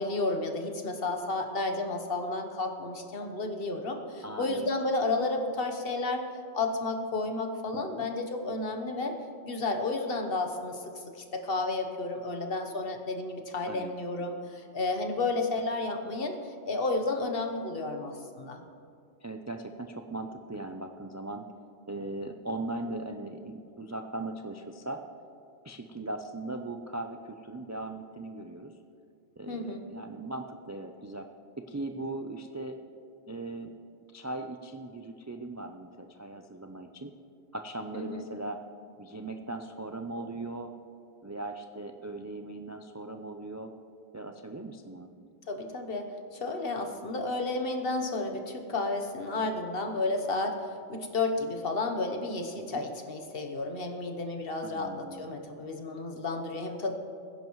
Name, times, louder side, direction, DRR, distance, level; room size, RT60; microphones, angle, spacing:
voice 1, 0.0-6.3 6.5-9.1 9.4-10.8 11.1-18.6 29.5-29.8 37.9-38.2 45.5-50.6 50.9-56.9, left 2 dB, 60° left, 4 dB, 1.3 m, -32 dB
voice 2, 4.2-4.7 7.7-8.0 13.6-13.9 19.2-21.4 21.9-25.0 25.6-28.7 29.4-31.3 31.6-32.8 33.3-33.7 34.1-37.1 37.5-38.6 39.0-40.7 41.2-43.7 44.1-45.1 52.6-52.8 54.6-55.4, right 2 dB, 30° right, 5 dB, 0.3 m, -39 dB
21.0 x 10.5 x 3.1 m, 2.5 s
omnidirectional pair, 1.1 m